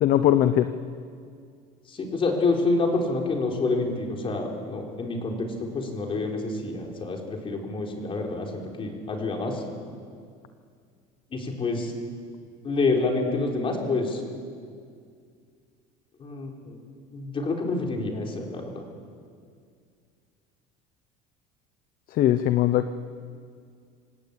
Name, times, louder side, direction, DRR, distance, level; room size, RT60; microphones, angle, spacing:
voice 1, 0.0-0.7 22.1-22.9, left 12 dB, 50° left, 10 dB, 0.9 m, -20 dB
voice 2, 1.9-9.6 11.3-11.9 12.6-14.2 16.2-16.8 17.1-18.8, left 3 dB, 30° left, 1 dB, 4.3 m, -27 dB
27.0 x 17.5 x 8.8 m, 2.2 s
cardioid pair, 140°, 19 cm